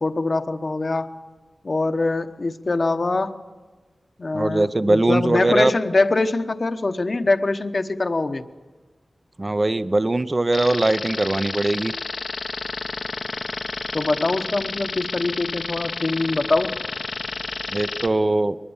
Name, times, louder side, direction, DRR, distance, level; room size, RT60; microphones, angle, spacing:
voice 1, 0.0-1.1 1.6-3.4 4.2-8.4 13.9-16.8, left 2 dB, 50° left, 8 dB, 1.0 m, -23 dB
voice 2, 4.3-5.7 9.4-11.9 17.7-18.6, right 2 dB, 35° right, 12 dB, 0.7 m, -21 dB
sound 1, 10.5-18.1, left 4 dB, 80° left, 1.1 m, -30 dB
23.0 x 21.5 x 7.2 m, 1.3 s
wide cardioid pair, 75°, 0 cm